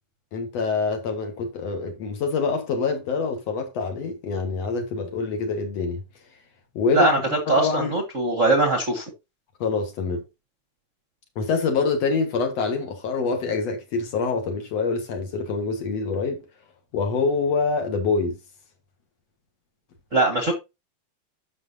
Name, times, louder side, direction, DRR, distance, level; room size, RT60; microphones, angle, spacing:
voice 1, 0.3-6.0 6.7-7.9 9.6-10.2 11.4-16.4 16.9-18.4, left 4 dB, 55° left, 2.6 m, -25 dB
voice 2, 7.5-9.0 20.1-20.5, right 2 dB, 40° right, 1.1 m, -21 dB
12.0 x 6.1 x 2.8 m
omnidirectional pair, 3.6 m